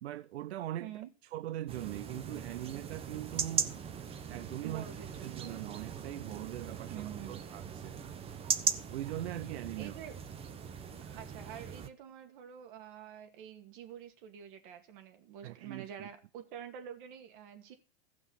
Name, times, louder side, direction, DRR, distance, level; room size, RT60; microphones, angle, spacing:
voice 1, 0.0-1.0 1.3-3.8 4.3-4.8 5.2-8.0 8.9-10.0 15.4-16.1, right 13 dB, 80° right, 0.6 m, -41 dB
voice 2, 0.8-1.1 4.6-5.4 6.9-7.4 9.8-10.1 11.1-17.7, right 9 dB, 55° right, 2.3 m, -47 dB
sound 1, 1.7-11.9, right 7 dB, 20° right, 0.8 m, -39 dB
15.0 x 6.0 x 5.7 m
hypercardioid pair, 135°, 32 cm